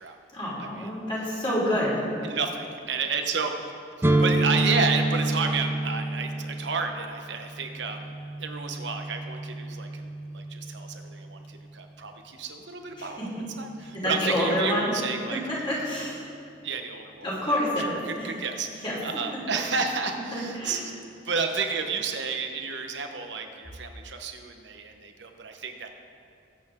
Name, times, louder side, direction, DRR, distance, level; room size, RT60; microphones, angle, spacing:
voice 1, 0.3-2.3 13.0-13.4 13.8-15.0 15.3-16.3 17.2-18.3 18.8-19.0 20.3-20.8, equal, 25° left, -6 dB, 3.6 m, -28 dB
voice 2, 2.2-3.7 4.0-15.4 16.6-17.6 18.0-20.9 21.2-25.9, right 5 dB, 65° right, 5 dB, 1.1 m, -31 dB
sound 1, 4.0-11.8, right 2 dB, 10° right, 0.4 m, -29 dB
21.0 x 8.2 x 3.7 m, 2.5 s
head